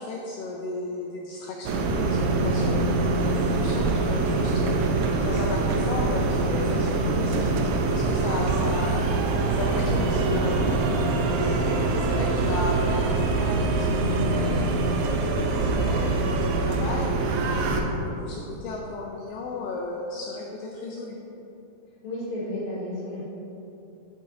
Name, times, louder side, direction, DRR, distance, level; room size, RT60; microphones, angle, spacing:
voice 1, 0.0-7.5 7.9-10.9 11.3-14.6 15.0-17.1 17.5-21.3, left 3 dB, 85° left, -1 dB, 1.9 m, -35 dB
sound 1, 1.7-17.8, right 3 dB, 85° right, 2.0 m, -24 dB
voice 2, 22.0-23.2, left 1 dB, 70° left, -6 dB, 3.1 m, -32 dB
9.2 x 5.6 x 2.6 m, 2.9 s
omnidirectional pair, 4.6 m